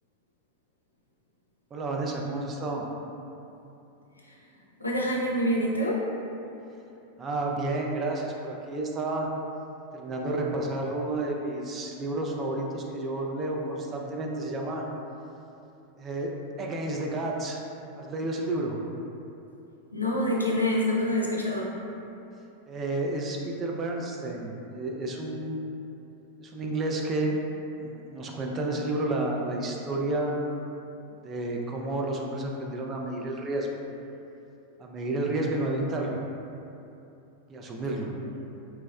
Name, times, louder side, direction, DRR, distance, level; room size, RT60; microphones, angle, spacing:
voice 1, 1.7-2.8 7.2-9.3 9.9-14.8 16.0-16.3 16.6-17.6 18.0-18.8 22.7-25.6 26.4-27.4 27.8-30.4 31.2-33.8 34.8-36.2 37.5-38.1, right 2 dB, 25° right, 0 dB, 0.4 m, -31 dB
voice 2, 4.8-6.1 17.9-18.1 19.9-21.7 38.2-38.3, left 1 dB, 85° left, -3 dB, 0.4 m, -27 dB
4.4 x 2.0 x 2.3 m, 2.8 s
figure-of-eight pair, 90°, 0 cm